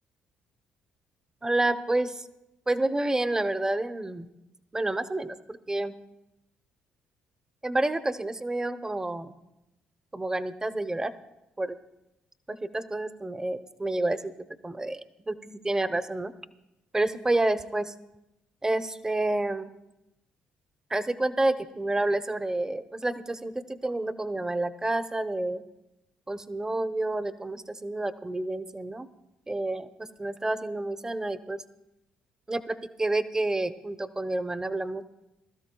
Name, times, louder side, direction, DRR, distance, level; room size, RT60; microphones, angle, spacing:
voice 1, 1.4-2.3 2.7-4.3 4.7-6.0 7.6-9.4 10.1-11.1 11.6-11.8 12.5-14.3 14.6-16.3 16.9-17.9 18.6-19.7 20.9-25.6 26.3-29.1 29.5-31.6 32.5-35.0, right 2 dB, 15° right, 11 dB, 0.8 m, -29 dB
20.5 x 13.0 x 2.3 m, 0.92 s
hypercardioid pair, 55°, 3 cm